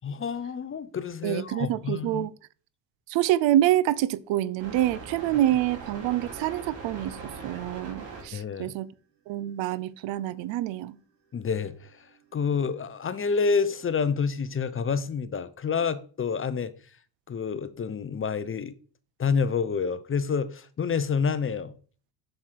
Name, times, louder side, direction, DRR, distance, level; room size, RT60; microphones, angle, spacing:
voice 1, 0.0-2.2 8.3-8.7 11.3-12.1 12.3-16.7 17.3-18.8 19.2-21.7, left 5 dB, 25° left, 0.7 m, -28 dB
voice 2, 1.2-2.3 3.1-8.9 9.3-11.0, right 13 dB, 65° right, 0.7 m, -26 dB
sound 1, 4.6-8.2 9.3-9.4 10.2-10.9 11.7-14.6, right 4 dB, 85° right, 4.4 m, -43 dB
7.2 x 6.6 x 4.6 m
supercardioid pair, 85°, 50 cm